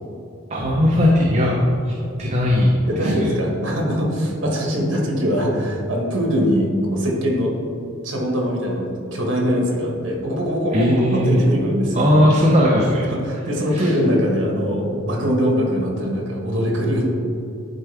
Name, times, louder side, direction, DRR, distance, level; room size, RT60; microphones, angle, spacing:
voice 1, 0.5-1.6 1.8-1.9 2.2-3.3 10.7-11.4 11.9-13.1 13.7-13.9, left 1 dB, 30° right, -3 dB, 0.7 m, -18 dB
voice 2, 2.9-7.5 8.0-12.0 13.1-17.1, equal, 60° right, -1 dB, 1.6 m, -22 dB
11.0 x 4.6 x 3.4 m, 2.7 s
head